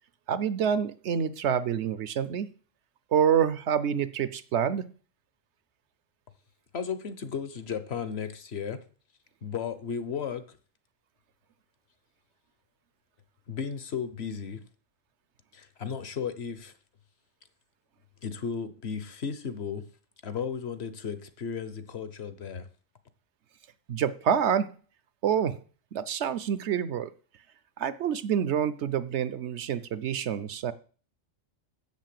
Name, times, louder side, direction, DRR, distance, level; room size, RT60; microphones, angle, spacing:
voice 1, 0.3-2.5 3.1-4.8 23.9-24.7 25.2-25.6 25.9-27.1 27.8-30.7, right 8 dB, 70° right, 15 dB, 0.9 m, -27 dB
voice 2, 6.7-8.8 9.4-10.6 13.5-14.6 15.5-16.7 18.2-19.8 20.2-22.7, left 6 dB, 60° left, 12 dB, 1.2 m, -34 dB
7.5 x 7.3 x 7.6 m, 0.40 s
omnidirectional pair, 1.3 m